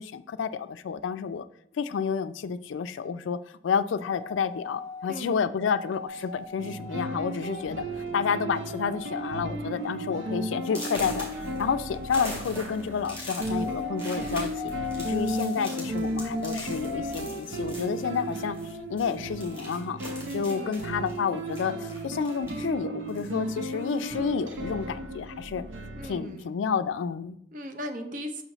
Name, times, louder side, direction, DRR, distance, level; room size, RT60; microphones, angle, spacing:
voice 1, 0.0-1.5 1.7-3.4 3.6-7.8 8.1-14.7 15.0-18.6 18.9-25.6 26.0-27.4, left 6 dB, 85° left, 13 dB, 0.3 m, -30 dB
sound 1, 4.0-5.2 5.6-7.7 8.8-9.4 9.8-12.3 13.4-15.7 16.1-17.2, left 5 dB, 25° left, 0.7 m, -40 dB
voice 2, 5.0-5.4 20.4-20.8 25.9-26.5 27.5-28.4, right 1 dB, 45° right, 6 dB, 0.6 m, -37 dB
sound 2, 6.1-6.5 7.3-7.4 7.8-8.0 8.3-8.8 9.2-9.3 9.8-9.9 10.6-18.7 19.0-22.7 23.1-24.1, equal, 15° right, 2.2 m, -42 dB
sound 3, 6.6-26.1, right 1 dB, 85° right, 0.7 m, -34 dB
6.1 x 5.5 x 3.0 m, 0.75 s
head